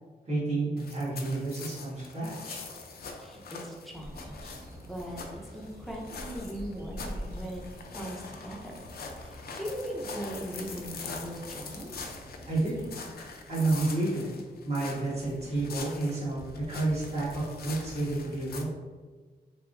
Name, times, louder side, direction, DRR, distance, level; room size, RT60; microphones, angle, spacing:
voice 1, 0.3-2.6 12.5-12.8 13.5-14.3 14.6-18.7, right 2 dB, 40° right, -9 dB, 1.3 m, -30 dB
sound 1, 0.8-18.6, left 4 dB, 65° left, 0.4 m, -43 dB
voice 2, 3.2-7.6 7.9-8.8 9.2-12.1, equal, ahead, -2 dB, 0.6 m, -40 dB
sound 2, 3.9-12.9, equal, 65° right, 0.7 m, -46 dB
3.4 x 2.6 x 2.5 m, 1.4 s
wide cardioid pair, 105°, 17 cm